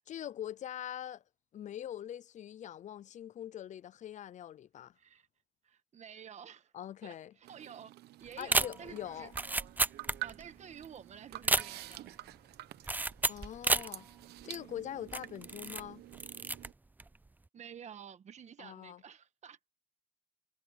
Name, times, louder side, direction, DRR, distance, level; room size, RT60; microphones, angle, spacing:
voice 1, 0.1-1.2 1.5-4.9 6.7-7.3 8.4-9.3 13.3-14.1 14.4-16.0 18.6-19.0, left 11 dB, 45° left, 0.6 m, -43 dB
voice 2, 5.6-6.7 7.0-9.3 10.2-12.2 17.5-19.6, right 8 dB, 45° right, 1.5 m, -50 dB
sound 1, 7.4-16.7, right 16 dB, 75° right, 0.9 m, -48 dB
sound 2, 8.4-10.6 10.8-10.9 11.3-12.1 12.9-14.0 14.4-14.5 15.1-15.9 16.1-16.7 17.0-17.3, right 2 dB, 10° right, 0.5 m, -32 dB
cardioid pair, 110°, 17 cm